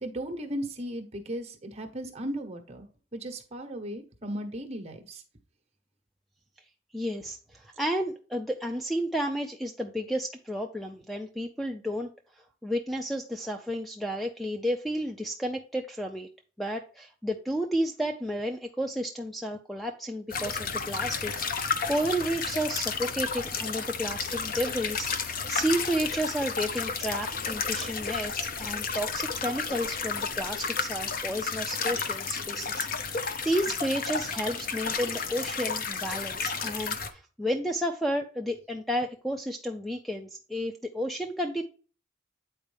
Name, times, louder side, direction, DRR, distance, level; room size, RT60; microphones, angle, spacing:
voice 1, 0.0-2.9 3.1-5.2, right 1 dB, 30° right, 4 dB, 1.2 m, -36 dB
voice 2, 6.9-12.1 12.4-16.3 16.6-41.6, equal, ahead, 5 dB, 0.4 m, -32 dB
sound 1, 20.3-37.1, left 5 dB, 45° left, 0.7 m, -32 dB
8.8 x 4.4 x 3.4 m, 0.37 s
head